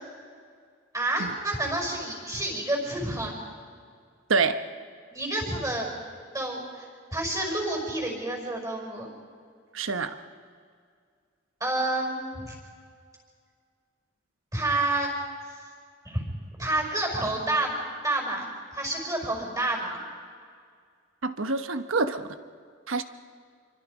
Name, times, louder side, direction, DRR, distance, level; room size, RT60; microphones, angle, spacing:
voice 1, 0.9-3.4 5.1-5.9 6.3-9.1 11.6-12.5 14.5-15.1 16.0-16.2 16.6-17.7 18.0-20.0, right 2 dB, 20° right, 1 dB, 5.6 m, -29 dB
voice 2, 4.3-4.6 9.7-10.2 21.2-22.3 22.9-23.0, right 4 dB, 80° right, 9 dB, 1.1 m, -26 dB
27.5 x 24.0 x 5.1 m, 2.1 s
head